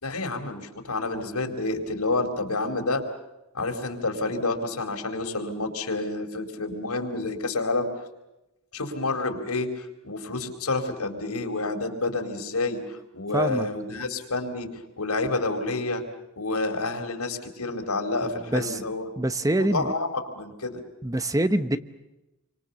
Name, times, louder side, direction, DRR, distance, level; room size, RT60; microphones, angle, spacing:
voice 1, 0.0-3.0 3.5-7.9 8.7-16.0 16.4-19.1 19.6-20.8, left 2 dB, 90° left, 4 dB, 4.2 m, -29 dB
voice 2, 13.3-13.7 18.5-18.8 19.2-19.9 21.0-21.8, right 1 dB, 15° right, 12 dB, 0.9 m, -24 dB
29.0 x 25.0 x 7.0 m, 0.97 s
head